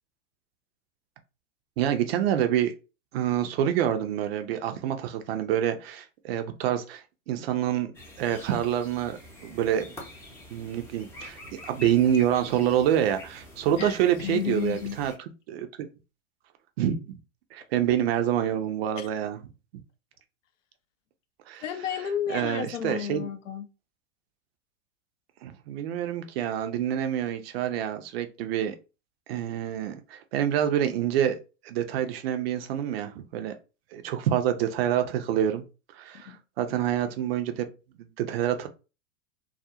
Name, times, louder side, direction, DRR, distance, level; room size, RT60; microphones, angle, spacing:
voice 1, 1.8-2.7 3.1-7.9 8.2-9.9 10.5-15.1 15.5-15.7 16.8-17.2 17.5-19.4 21.5-21.6 22.3-23.3 25.4-28.7 29.3-31.4 31.6-33.5 33.9-35.6 35.9-37.6 38.0-38.7, right 10 dB, 50° right, 0.5 m, -27 dB
sound 1, 7.9-15.2, left 1 dB, 5° left, 0.4 m, -46 dB
voice 2, 13.7-15.0 19.0-19.1 21.6-23.7 36.2-36.4, left 9 dB, 65° left, 0.5 m, -32 dB
2.3 x 2.0 x 2.7 m
hypercardioid pair, 100°, 40 cm